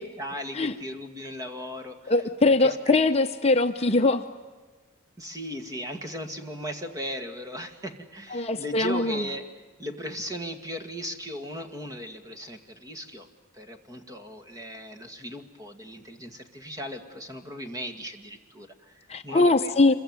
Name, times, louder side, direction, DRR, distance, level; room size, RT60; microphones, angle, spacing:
voice 1, 0.2-3.0 3.8-4.1 5.2-13.3 13.5-19.7, equal, 15° right, 6 dB, 2.0 m, -37 dB
voice 2, 2.1-4.2 8.3-9.3 19.1-19.9, left 3 dB, 30° left, 6 dB, 0.8 m, -22 dB
26.5 x 23.0 x 9.5 m, 1.4 s
head